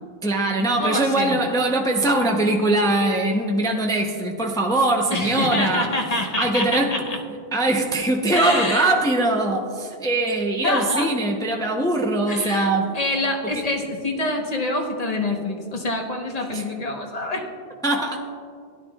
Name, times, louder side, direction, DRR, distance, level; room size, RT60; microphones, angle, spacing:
voice 1, 0.2-5.9 6.4-7.0 7.5-13.0 16.5-16.6 17.8-18.2, right 2 dB, 5° left, 1 dB, 0.6 m, -22 dB
voice 2, 0.8-1.4 5.1-7.2 8.3-8.9 10.6-11.1 12.3-12.7 12.9-17.4 17.9-18.0, left 2 dB, 40° left, 2 dB, 1.2 m, -26 dB
16.5 x 11.5 x 2.3 m, 2.2 s
omnidirectional pair, 1.0 m